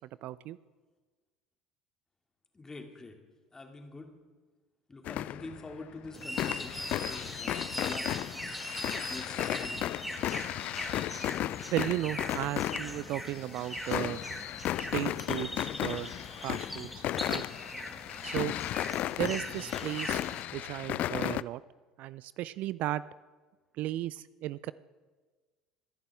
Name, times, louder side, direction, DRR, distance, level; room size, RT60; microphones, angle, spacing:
voice 1, 0.2-0.6 11.7-14.2 14.8-16.1 16.4-17.4 18.2-18.5 19.2-20.2 20.5-21.6 22.0-23.0 23.8-24.7, right 14 dB, 55° right, 18 dB, 0.4 m, -35 dB
voice 2, 2.5-3.1 3.5-4.1 4.9-8.1 9.1-9.8, left 3 dB, 20° left, 3 dB, 2.4 m, -45 dB
sound 1, 5.0-5.8 6.0-21.4, left 13 dB, 50° left, 0.3 m, -35 dB
sound 2, 6.1-20.4, equal, ahead, 1.9 m, -41 dB
25.0 x 10.5 x 3.5 m, 1.4 s
figure-of-eight pair, 65°, 3 cm